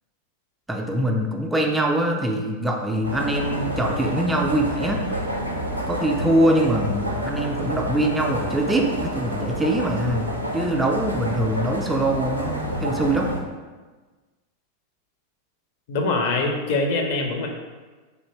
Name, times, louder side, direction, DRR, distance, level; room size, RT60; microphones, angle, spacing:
voice 1, 0.7-5.0 5.9-13.3, right 1 dB, 10° right, 1 dB, 0.3 m, -23 dB
sound 1, 3.0-13.4, equal, 85° right, 0.4 m, -28 dB
voice 2, 15.9-17.5, left 3 dB, 50° left, 2 dB, 0.5 m, -23 dB
3.2 x 2.6 x 3.2 m, 1.3 s
figure-of-eight pair, 90°, 0 cm